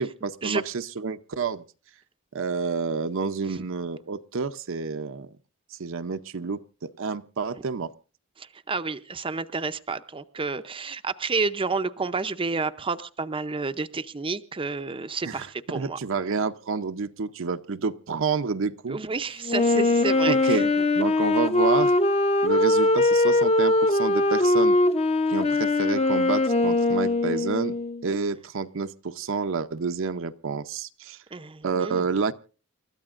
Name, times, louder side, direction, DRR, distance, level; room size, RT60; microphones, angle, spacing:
voice 1, 0.0-1.6 2.3-5.3 5.8-7.9 15.2-19.0 20.3-20.7 21.0-21.9 22.4-24.8 25.3-27.8 28.0-31.2 31.6-32.3, right 4 dB, 65° right, 0.7 m, -29 dB
voice 2, 8.4-16.0 18.9-20.7 31.3-32.0, right 4 dB, 25° right, 0.6 m, -30 dB
Wind instrument woodwind instrument, 19.5-28.0, left 2 dB, 30° left, 0.8 m, -21 dB
29.0 x 13.5 x 2.5 m
head